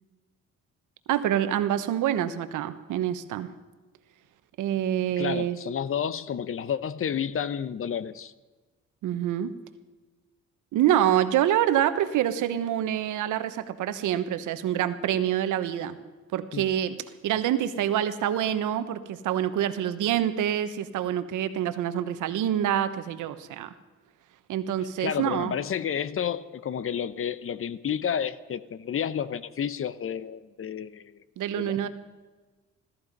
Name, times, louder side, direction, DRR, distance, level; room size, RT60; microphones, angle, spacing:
voice 1, 1.1-3.5 4.6-5.6 9.0-9.5 10.7-16.0 16.3-17.0 17.2-23.7 24.5-25.6 31.4-31.9, right 11 dB, 85° right, 11 dB, 1.2 m, -26 dB
voice 2, 5.2-8.3 16.5-16.7 25.0-31.2 31.6-31.9, left 8 dB, 45° left, 16 dB, 0.8 m, -31 dB
17.0 x 14.0 x 5.3 m, 1.3 s
cardioid pair, 90°, 30 cm